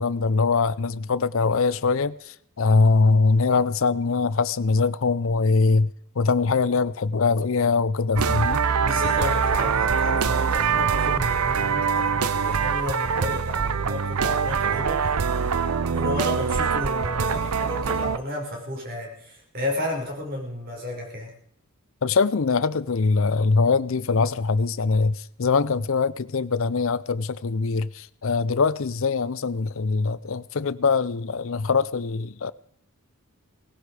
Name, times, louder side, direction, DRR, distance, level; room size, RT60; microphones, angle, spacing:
voice 1, 0.0-5.9 6.2-8.6 22.0-32.5, left 4 dB, 60° left, 0.6 m, -22 dB
sound 1, 8.2-18.2, right 6 dB, 85° right, 0.7 m, -24 dB
voice 2, 8.8-15.1 15.9-21.3, left 1 dB, 45° right, 5.5 m, -32 dB
18.0 x 16.0 x 4.9 m
head